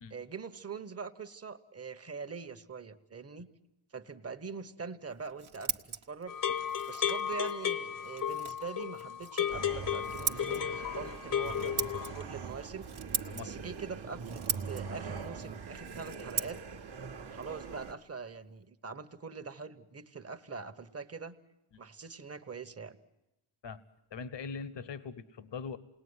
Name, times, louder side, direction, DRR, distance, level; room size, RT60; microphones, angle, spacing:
voice 1, 0.1-3.5 3.9-6.4 6.9-12.9 13.4-16.6 17.3-21.4 21.8-23.0, right 5 dB, 30° right, 9 dB, 1.1 m, -43 dB
Scissors, 5.1-18.7, right 6 dB, 70° right, 1.2 m, -42 dB
sound 1, 6.3-12.2, left 9 dB, 40° left, 0.9 m, -34 dB
sound 2, 9.5-17.9, right 5 dB, 50° right, 1.2 m, -43 dB
voice 2, 24.1-25.8, left 5 dB, 60° left, 16 dB, 1.0 m, -41 dB
28.5 x 19.5 x 9.6 m, 0.95 s
wide cardioid pair, 180°, 50 cm